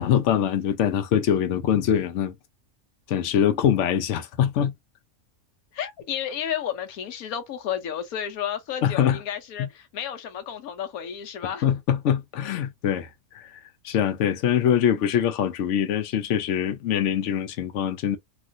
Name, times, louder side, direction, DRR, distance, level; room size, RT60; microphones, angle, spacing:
voice 1, 0.0-2.4 3.1-4.7 8.8-9.2 9.6-9.7 11.6-13.1 13.3-13.6 13.8-18.2, left 9 dB, 65° left, 0.9 m, -23 dB
voice 2, 5.7-11.6, left 9 dB, 85° left, 1.2 m, -32 dB
3.0 x 2.4 x 2.5 m
omnidirectional pair, 1.5 m